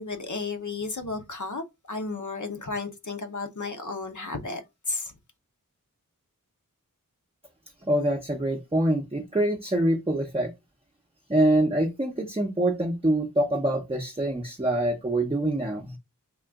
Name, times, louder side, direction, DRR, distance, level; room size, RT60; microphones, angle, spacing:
voice 1, 0.0-4.6 4.9-5.1, left 3 dB, 60° left, 0.9 m, -33 dB
voice 2, 7.8-10.5 11.3-16.0, right 1 dB, 15° right, 0.7 m, -25 dB
3.8 x 2.4 x 3.4 m
wide cardioid pair, 40°, 33 cm